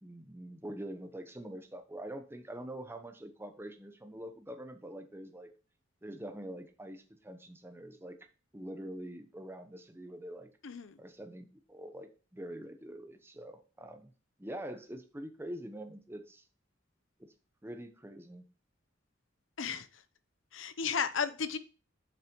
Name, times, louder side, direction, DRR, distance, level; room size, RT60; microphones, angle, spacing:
voice 1, 0.0-5.5 6.0-8.2 8.5-10.5 11.0-14.1 14.4-16.4 17.2-17.3 17.6-18.4, right 1 dB, 10° right, 1.0 m, -45 dB
voice 2, 10.6-11.0 19.6-20.0 20.5-21.6, left 6 dB, 85° left, 0.8 m, -34 dB
8.6 x 6.7 x 3.0 m
head